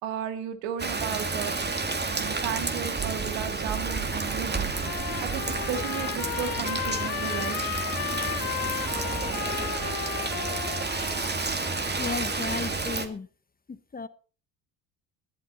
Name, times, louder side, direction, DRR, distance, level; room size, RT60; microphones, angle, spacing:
voice 1, 0.0-1.6 2.0-7.6, right 9 dB, 75° right, 2.4 m, -34 dB
Rain, 0.8-13.1, right 3 dB, 20° right, 2.4 m, -30 dB
Trumpet, 4.1-12.5, left 22 dB, 70° left, 0.7 m, -35 dB
voice 2, 12.0-13.3 13.7-14.1, left 4 dB, 20° left, 1.0 m, -34 dB
19.5 x 11.5 x 4.2 m
hypercardioid pair, 70°, 44 cm